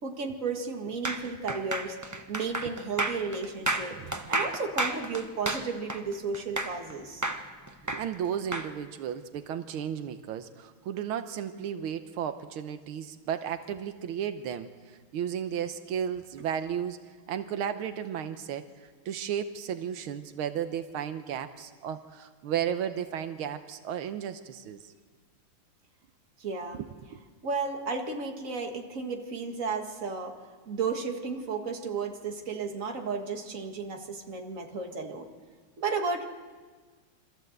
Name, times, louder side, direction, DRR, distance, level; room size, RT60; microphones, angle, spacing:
voice 1, 0.0-7.3 26.4-26.8 27.4-35.3 35.8-36.3, right 4 dB, 40° right, 3 dB, 2.1 m, -33 dB
sound 1, 1.0-6.9 7.2-8.7, right 2 dB, 15° right, 0.6 m, -31 dB
voice 2, 7.8-24.9 26.7-27.2, right 9 dB, 85° right, 9 dB, 1.7 m, -34 dB
26.0 x 14.0 x 7.9 m, 1.5 s
omnidirectional pair, 2.3 m